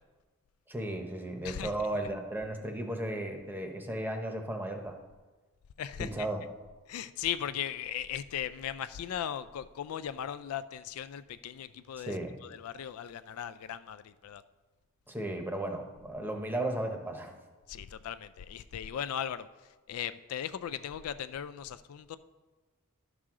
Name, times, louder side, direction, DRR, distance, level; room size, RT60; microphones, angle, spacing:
voice 1, 0.7-5.0 6.0-6.4 12.1-12.3 15.1-17.3, right 1 dB, 10° right, 4 dB, 0.8 m, -35 dB
voice 2, 5.8-6.3 6.9-14.4 17.7-19.5 19.9-22.2, left 9 dB, 75° left, 13 dB, 0.3 m, -38 dB
11.5 x 6.1 x 3.7 m, 1.3 s
head